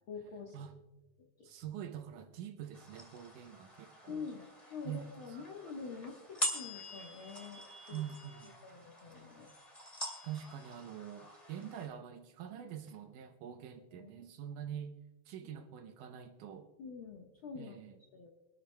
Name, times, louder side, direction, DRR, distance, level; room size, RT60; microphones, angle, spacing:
voice 1, 0.1-0.5 4.1-7.6 7.9-8.0 8.6-9.5 13.9-14.2 15.4-15.5 16.8-17.8 18.1-18.3, left 5 dB, 60° left, -1 dB, 1.4 m, -46 dB
voice 2, 1.4-4.3 4.9-5.1 7.9-8.6 10.2-15.0 15.3-16.7 17.6-17.9, right 9 dB, 75° right, 7 dB, 2.1 m, -45 dB
sound 1, 2.7-11.9, equal, 15° left, 1.7 m, -44 dB
24.0 x 13.0 x 2.2 m, 1.1 s
omnidirectional pair, 4.0 m